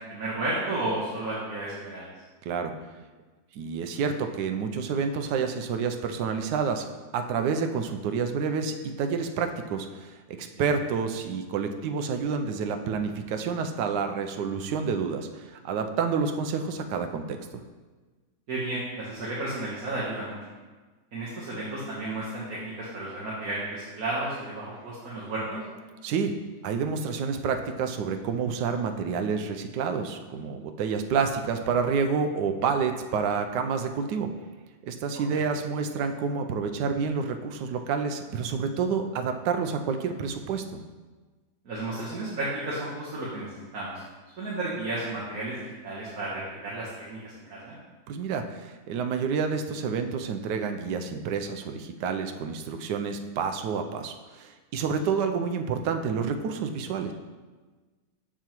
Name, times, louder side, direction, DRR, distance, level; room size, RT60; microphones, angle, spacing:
voice 1, 0.1-2.1 10.6-10.7 18.5-20.3 21.1-25.6 35.1-35.4 41.6-44.0 44.4-47.8, right 2 dB, 55° right, -7 dB, 1.6 m, -33 dB
voice 2, 2.4-2.7 3.5-6.9 7.1-17.6 26.0-26.4 26.6-34.3 34.8-40.8 48.1-57.1, right 5 dB, 75° right, 6 dB, 1.2 m, -29 dB
7.0 x 6.8 x 3.0 m, 1.3 s
omnidirectional pair, 2.0 m